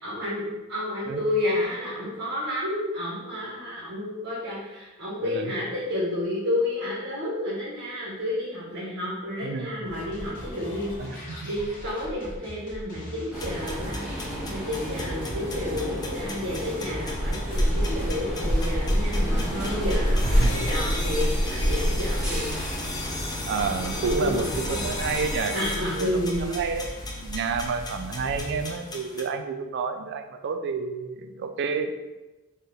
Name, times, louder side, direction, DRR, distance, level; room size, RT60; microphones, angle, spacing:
voice 1, 0.0-10.9 11.4-22.6 23.8-24.8 25.5-26.5, left 1 dB, 75° right, -9 dB, 1.4 m, -30 dB
voice 2, 5.2-5.5 9.4-9.7 11.0-11.5 20.2-20.7 23.5-25.6 26.0-26.9 27.2-32.0, right 5 dB, 55° right, 7 dB, 0.4 m, -30 dB
sound 1, 9.8-28.7, equal, 40° left, 1.2 m, -39 dB
sound 2, 13.3-29.2, left 3 dB, 20° left, 0.5 m, -38 dB
sound 3, 13.3-25.4, equal, 5° right, 0.9 m, -28 dB
4.2 x 2.5 x 3.9 m, 1.1 s
head